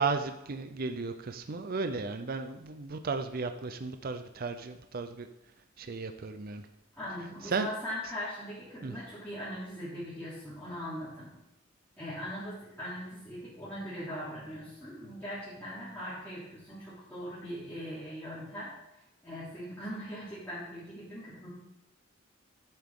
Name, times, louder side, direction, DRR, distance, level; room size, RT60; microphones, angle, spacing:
voice 1, 0.0-5.3 5.8-6.6 7.4-7.7 8.8-8.9, right 4 dB, 50° right, 8 dB, 0.5 m, -34 dB
voice 2, 7.0-11.3 12.0-18.7 19.2-21.5, equal, 10° left, -12 dB, 3.1 m, -40 dB
13.5 x 7.6 x 3.7 m, 0.92 s
head